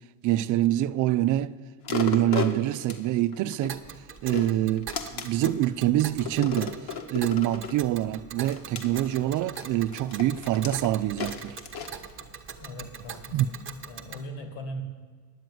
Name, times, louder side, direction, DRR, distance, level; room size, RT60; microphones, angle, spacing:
voice 1, 0.2-1.6 1.9-3.8 4.2-4.9 5.1-11.6 13.3-13.5, right 14 dB, 45° right, 0.4 m, -25 dB
sound 1, 1.8-3.7 4.2-5.6 6.2-7.8 8.4-12.6 13.1-13.2, left 7 dB, 55° left, 1.4 m, -35 dB
Tick, 3.7-14.2, right 7 dB, 25° right, 0.9 m, -42 dB
voice 2, 12.6-14.8, equal, 80° left, 2.6 m, -40 dB
10.0 x 7.6 x 9.4 m
supercardioid pair, 120°, 47 cm